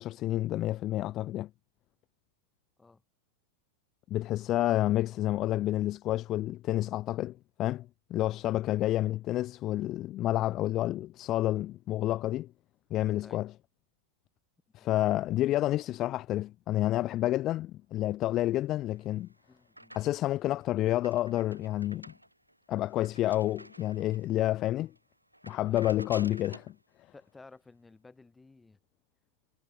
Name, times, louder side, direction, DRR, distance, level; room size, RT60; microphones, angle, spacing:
voice 1, 0.0-1.5 4.1-12.5 12.9-13.5 14.7-19.3 19.9-22.1 22.7-24.9 25.5-26.7, left 14 dB, 35° left, 0.3 m, -29 dB
sound 1, 18.8-20.4 20.7-24.4 24.8-25.0 25.3-26.8, right 1 dB, 85° right, 1.7 m, -51 dB
voice 2, 19.5-20.0 25.7-25.9 27.1-28.8, left 3 dB, 10° left, 3.3 m, -55 dB
figure-of-eight pair, 90°, 0 cm